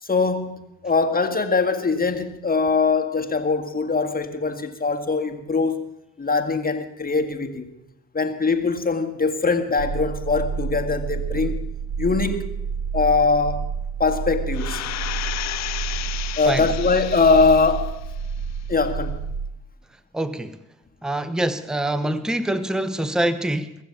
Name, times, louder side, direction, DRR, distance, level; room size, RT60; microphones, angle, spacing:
voice 1, 0.0-7.7 8.1-11.7 12.0-12.5 12.9-13.7 14.0-14.8 16.4-18.0 18.7-19.2, left 4 dB, 25° left, 1.9 m, -22 dB
sound 1, 9.8-19.5, right 6 dB, 45° right, 1.2 m, -29 dB
sound 2, 14.5-17.9 18.4-18.5, left 14 dB, 50° left, 0.5 m, -32 dB
voice 2, 20.1-20.6 21.0-23.8, right 1 dB, ahead, 0.9 m, -25 dB
22.0 x 7.4 x 7.3 m
supercardioid pair, 60°, 35 cm